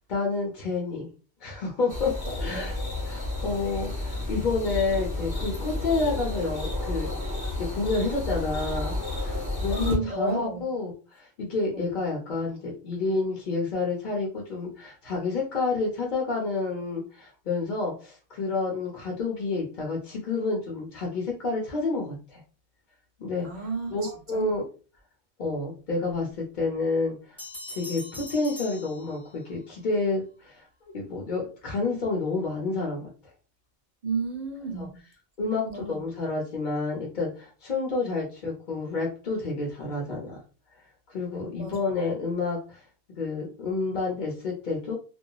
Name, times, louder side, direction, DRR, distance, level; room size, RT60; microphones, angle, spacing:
voice 1, 0.1-1.1 1.4-2.7 3.1-7.3 7.6-22.4 23.2-23.5 23.9-24.7 25.4-27.4 27.7-30.6 30.9-33.1 34.7-34.9 35.4-40.4 41.1-42.8 43.2-44.9, left 3 dB, 50° left, 0.7 m, -29 dB
sound 1, 1.9-9.9, left 2 dB, 20° left, 1.0 m, -31 dB
voice 2, 2.2-2.7 9.8-10.7 11.7-11.9 23.4-24.5 34.0-35.0 35.4-36.0 38.0-38.1 41.5-41.8, right 3 dB, 55° right, 0.5 m, -32 dB
Bell, 27.4-29.6, left 2 dB, 5° left, 1.3 m, -42 dB
2.9 x 2.3 x 2.2 m
omnidirectional pair, 1.1 m